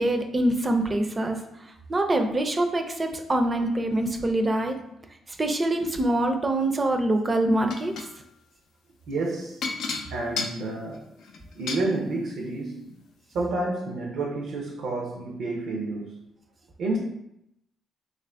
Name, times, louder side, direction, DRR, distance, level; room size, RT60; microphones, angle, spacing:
voice 1, 0.0-1.4 1.9-4.7 5.4-7.9, right 1 dB, 25° right, 5 dB, 0.4 m, -24 dB
Old tea cups and spoon, 7.7-8.1 9.6-11.9 12.9-13.0 13.4-13.5, left 4 dB, 80° left, 0.4 m, -32 dB
voice 2, 9.1-9.6 10.1-11.1 11.6-12.8 13.3-16.1 16.8-17.0, right 2 dB, 75° right, -1 dB, 0.5 m, -29 dB
3.2 x 2.5 x 3.3 m, 0.81 s
cardioid pair, 90°, 0 cm